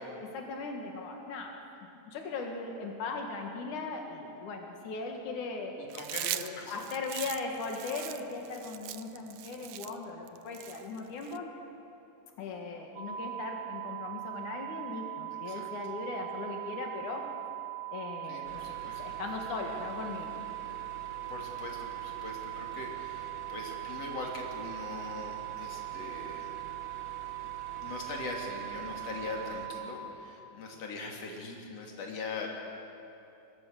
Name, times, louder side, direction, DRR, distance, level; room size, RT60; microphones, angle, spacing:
voice 1, 0.2-1.5 2.1-5.7 6.3-11.5 12.4-17.2 17.9-20.3, left 4 dB, 90° left, 2 dB, 3.3 m, -38 dB
voice 2, 5.8-6.9 15.5-15.7 18.3-19.0 21.3-26.5 27.8-32.5, left 3 dB, 55° left, 0 dB, 3.9 m, -41 dB
Chewing mastication, 5.9-11.4, right 14 dB, 80° right, 2.1 m, -40 dB
sound 1, 13.0-29.8, right 19 dB, 60° right, 5.6 m, -40 dB
sound 2, 18.4-29.7, right 4 dB, 45° right, 1.1 m, -49 dB
25.0 x 22.5 x 6.6 m, 2.9 s
omnidirectional pair, 3.4 m